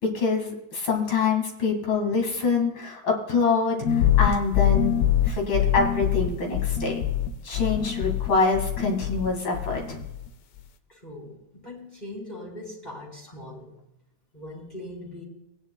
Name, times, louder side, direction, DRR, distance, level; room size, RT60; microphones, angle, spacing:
voice 1, 0.0-7.0 7.4-10.0, left 4 dB, 80° left, 2 dB, 2.8 m, -25 dB
sound 1, 3.8-9.3 9.5-10.3, left 10 dB, 65° left, 1.0 m, -24 dB
voice 2, 10.9-13.7 14.3-15.2, left 1 dB, 20° left, -3 dB, 2.8 m, -40 dB
19.0 x 9.8 x 2.2 m, 0.90 s
omnidirectional pair, 2.1 m